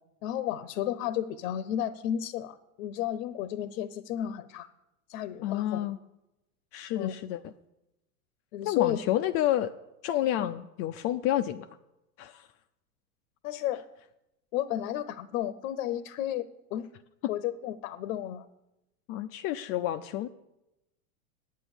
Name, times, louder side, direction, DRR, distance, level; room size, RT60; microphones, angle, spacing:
voice 1, 0.2-4.7 5.1-5.8 7.0-7.2 8.5-9.0 10.4-10.5 13.4-13.8 14.5-16.9 17.3-18.5, left 11 dB, 60° left, 15 dB, 0.8 m, -32 dB
voice 2, 5.4-6.0 6.7-7.5 8.6-9.7 10.0-11.7 12.2-12.5 17.2-17.3 19.1-20.3, left 13 dB, 35° left, 9 dB, 0.4 m, -29 dB
9.3 x 9.0 x 7.0 m, 0.92 s
hypercardioid pair, 100°, 45 cm